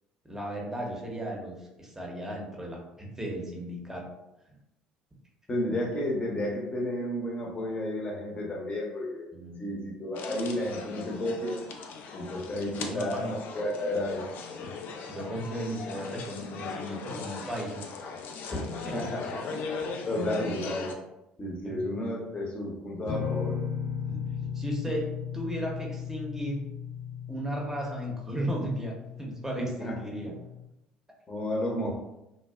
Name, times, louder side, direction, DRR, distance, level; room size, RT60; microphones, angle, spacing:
voice 1, 0.2-4.1 4.5-4.6 9.3-9.8 12.8-13.4 15.1-17.8 18.8-19.1 19.5-19.6 21.6-22.1 24.1-25.1 25.3-26.7 27.3-30.3, right 1 dB, 10° right, -1 dB, 0.7 m, -35 dB
voice 2, 5.5-9.3 9.6-11.6 12.1-14.3 18.9-19.4 20.1-20.9 21.4-23.6 29.6-29.9 31.3-32.0, left 1 dB, 30° left, -1 dB, 0.7 m, -32 dB
sound 1, 10.1-20.9, left 5 dB, 60° left, 0.3 m, -39 dB
sound 2, 23.1-30.6, left 7 dB, 80° left, 0.8 m, -36 dB
2.5 x 2.1 x 2.3 m, 0.92 s
hypercardioid pair, 60°, 4 cm